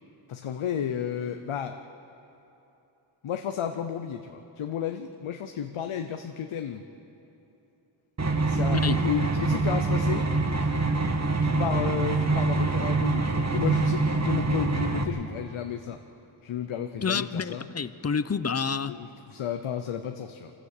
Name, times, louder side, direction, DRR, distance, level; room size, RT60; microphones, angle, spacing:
voice 1, 0.3-1.8 3.2-6.9 8.5-10.3 11.4-16.0 16.4-17.7 18.9-20.5, left 8 dB, 90° left, 7 dB, 0.8 m, -32 dB
sound 1, 8.2-15.0, right 3 dB, 35° right, 1.6 m, -25 dB
voice 2, 17.0-18.9, left 5 dB, 30° left, 14 dB, 0.7 m, -28 dB
25.5 x 15.5 x 6.6 m, 3.0 s
cardioid pair, 55°, 48 cm